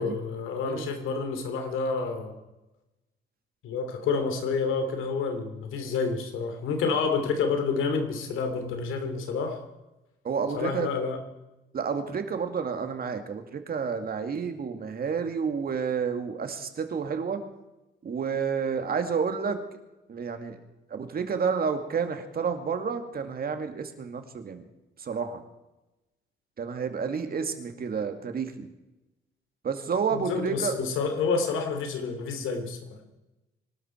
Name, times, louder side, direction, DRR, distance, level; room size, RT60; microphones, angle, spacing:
voice 1, 0.0-2.3 3.6-9.6 10.5-11.2 30.1-33.0, left 4 dB, 85° left, 7 dB, 2.9 m, -29 dB
voice 2, 10.2-10.9 11.7-17.4 18.0-19.6 20.1-20.6 20.9-24.6 25.0-25.4 26.6-28.7 29.6-30.8, right 6 dB, 50° right, 7 dB, 2.3 m, -30 dB
24.5 x 12.5 x 4.6 m, 1.0 s
cardioid pair, 90°, 20 cm